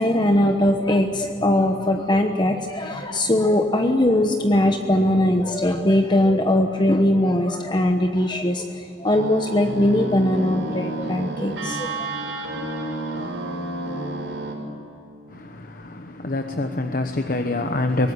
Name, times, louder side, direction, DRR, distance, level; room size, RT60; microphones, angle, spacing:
voice 1, 0.0-12.1, left 1 dB, 25° left, 1.1 m, -20 dB
sound 1, 9.1-14.5, right 2 dB, 90° right, 7.1 m, -30 dB
voice 2, 15.3-18.1, left 2 dB, 50° left, 1.1 m, -26 dB
23.5 x 19.0 x 9.9 m
head